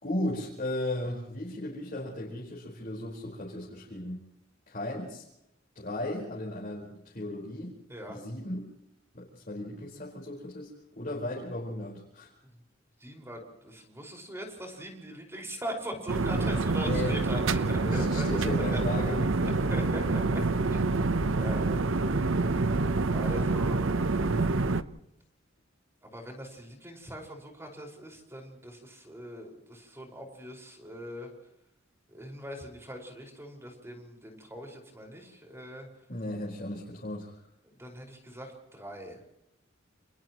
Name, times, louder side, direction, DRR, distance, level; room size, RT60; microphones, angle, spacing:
voice 1, 0.0-4.2 4.7-5.2 5.7-7.7 8.1-8.7 9.1-12.3 16.8-17.2 17.8-19.6 36.1-37.4, left 1 dB, 45° left, -4 dB, 4.9 m, -36 dB
voice 2, 7.9-8.2 12.4-12.5 13.0-18.8 19.7-20.4 20.7-21.1 21.4-22.5 23.1-23.8 26.0-31.3 32.1-35.9 37.6-39.2, equal, 15° right, 1 dB, 5.4 m, -41 dB
sound 1, 16.1-24.8, right 3 dB, 85° right, 0.9 m, -27 dB
30.0 x 29.5 x 3.1 m, 0.83 s
head